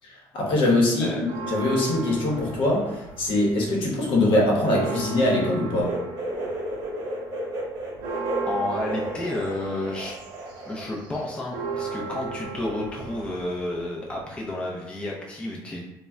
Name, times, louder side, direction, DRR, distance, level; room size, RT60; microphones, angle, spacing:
voice 1, 0.3-1.1 1.5-5.9, left 1 dB, 60° left, -2 dB, 0.8 m, -22 dB
sound 1, 1.2-3.6 4.0-14.4, right 5 dB, 80° right, 0.6 m, -36 dB
sound 2, 5.8-10.9 11.1-12.1 12.4-12.5 13.5-13.6, right 1 dB, 40° right, 0.9 m, -33 dB
voice 2, 8.5-10.2 10.6-15.8, left 2 dB, 10° left, -3 dB, 0.4 m, -31 dB
2.1 x 2.1 x 3.5 m, 0.95 s
supercardioid pair, 95°, 9 cm